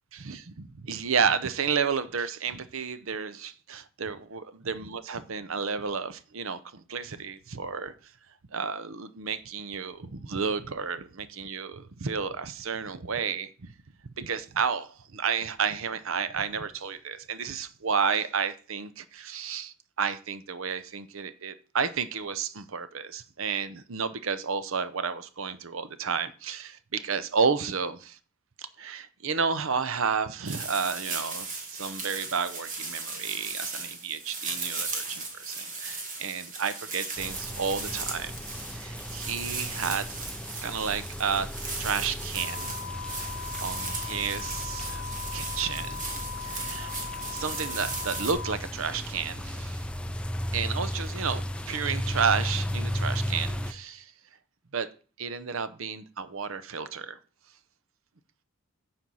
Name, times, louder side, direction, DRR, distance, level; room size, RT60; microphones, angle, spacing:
voice 1, 0.1-7.9 8.5-13.7 14.2-28.2 28.6-38.3 38.7-40.3 40.6-41.5 41.8-42.8 43.1-43.3 43.6-45.0 45.3-46.0 46.4-46.9 47.3-49.8 50.5-54.1 54.7-54.9 55.2-57.2, right 6 dB, 60° right, 0.7 m, -31 dB
sound 1, 30.5-48.3, right 3 dB, 35° right, 1.9 m, -37 dB
sound 2, 37.2-53.7, equal, 5° left, 0.4 m, -35 dB
sound 3, 42.4-48.6, left 7 dB, 65° left, 0.5 m, -39 dB
9.3 x 4.4 x 6.2 m
head